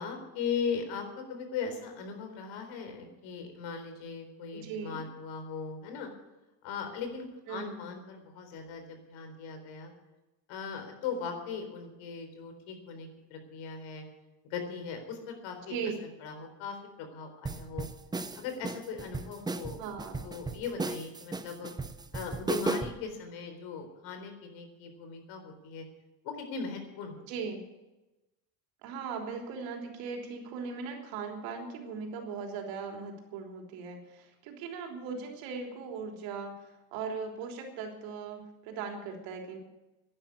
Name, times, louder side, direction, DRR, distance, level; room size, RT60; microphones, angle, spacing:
voice 1, 0.0-6.1 6.6-9.9 10.5-14.0 14.5-15.8 16.2-17.9 18.4-19.8 20.2-21.7 22.1-25.8 26.2-27.2, left 5 dB, 80° left, 6 dB, 4.0 m, -39 dB
voice 2, 4.5-5.0 7.5-7.9 15.7-15.9 19.8-20.2 27.3-27.6 28.8-39.6, right 5 dB, 90° right, 2 dB, 3.5 m, -39 dB
sound 1, 17.4-23.0, right 3 dB, 10° right, 0.5 m, -35 dB
11.5 x 11.0 x 9.5 m, 1.0 s
cardioid pair, 150°, 44 cm